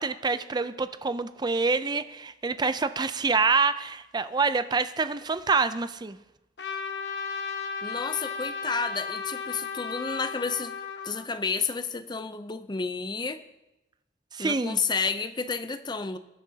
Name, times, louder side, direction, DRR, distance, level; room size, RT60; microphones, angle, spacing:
voice 1, 0.0-6.2 14.3-14.8, right 4 dB, 25° right, 12 dB, 0.5 m, -26 dB
Trumpet, 6.6-11.3, left 5 dB, 75° left, 1.0 m, -34 dB
voice 2, 7.8-10.7 11.0-13.4 14.4-16.2, left 5 dB, 25° left, 10 dB, 0.6 m, -31 dB
21.0 x 10.0 x 2.8 m, 0.97 s
head